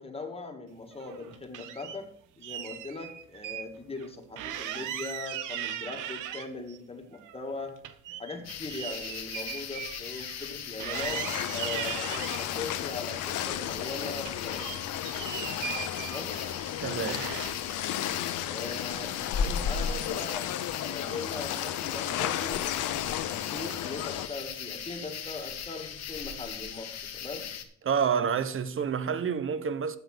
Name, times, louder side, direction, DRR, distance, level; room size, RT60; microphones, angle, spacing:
voice 1, 0.0-2.1 2.4-7.8 8.2-14.8 16.0-16.4 18.5-27.5, left 3 dB, 20° left, 2.1 m, -40 dB
sound 1, 0.9-2.0 2.4-3.6 4.0-4.1 4.4-6.8 7.1-10.5 10.8-12.5 13.0-13.9 14.2-16.7 17.1-17.7, right 10 dB, 85° right, 0.9 m, -38 dB
sound 2, 8.4-27.6, left 7 dB, 60° left, 1.3 m, -38 dB
sound 3, 10.9-24.3, left 12 dB, 80° left, 0.8 m, -34 dB
voice 2, 16.8-17.2 27.8-30.0, right 7 dB, 45° right, 1.0 m, -28 dB
8.0 x 7.1 x 6.2 m
cardioid pair, 90°, 30 cm